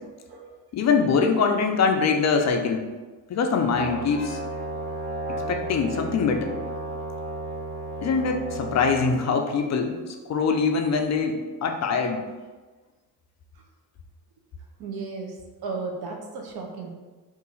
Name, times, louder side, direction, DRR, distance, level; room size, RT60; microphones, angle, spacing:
voice 1, 0.0-0.6 14.8-16.9, right 4 dB, 55° right, 1 dB, 0.8 m, -35 dB
voice 2, 0.7-2.9 3.3-4.4 5.5-6.6 8.0-12.2, left 5 dB, 40° left, 4 dB, 0.4 m, -23 dB
Brass instrument, 3.7-9.2, right 2 dB, 30° right, 0.9 m, -33 dB
2.7 x 2.5 x 3.9 m, 1.3 s
supercardioid pair, 85°, 46 cm